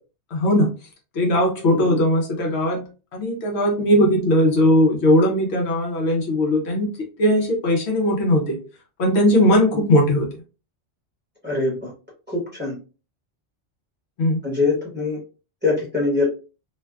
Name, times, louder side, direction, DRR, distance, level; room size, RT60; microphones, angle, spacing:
voice 1, 0.3-0.7 1.1-6.9 7.2-8.6 9.0-10.3 14.2-14.4, left 1 dB, 70° left, 0 dB, 0.9 m, -19 dB
voice 2, 1.7-2.0 11.4-11.9 12.3-12.8 14.4-15.2 15.6-16.2, left 3 dB, 10° right, -6 dB, 1.0 m, -23 dB
2.5 x 2.2 x 2.3 m, 0.34 s
omnidirectional pair, 1.2 m